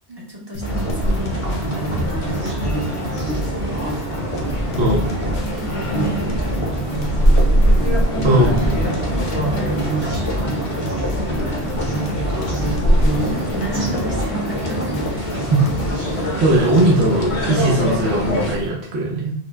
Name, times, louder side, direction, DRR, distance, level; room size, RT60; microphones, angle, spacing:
voice 1, 0.1-3.9 5.4-7.4 8.9-11.5 12.5-15.4 17.8-18.0, right 1 dB, 25° right, -3 dB, 0.7 m, -34 dB
sound 1, 0.5-15.9, equal, 80° left, 0.9 m, -30 dB
sound 2, 0.6-18.6, equal, 40° left, 0.6 m, -25 dB
sound 3, 0.9-18.7, right 1 dB, 50° right, 0.9 m, -24 dB
voice 2, 8.2-8.7 16.4-19.3, right 1 dB, 85° right, -3 dB, 1.0 m, -18 dB
4.6 x 2.0 x 2.2 m, 0.70 s
omnidirectional pair, 1.1 m